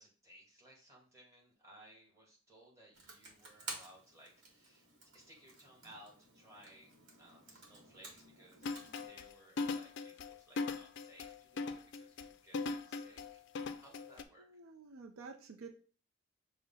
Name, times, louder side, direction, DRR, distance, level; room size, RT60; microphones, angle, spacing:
voice 1, 0.0-4.9 5.1-6.9 7.2-14.5, right 1 dB, 15° right, -3 dB, 1.5 m, -61 dB
Computer keyboard, 2.9-9.1, right 2 dB, 60° right, 1.3 m, -52 dB
sound 1, 8.6-14.2, left 4 dB, 55° left, 0.4 m, -40 dB
voice 2, 14.4-15.7, right 4 dB, 75° right, 4 dB, 0.5 m, -50 dB
6.2 x 2.1 x 3.7 m, 0.39 s
head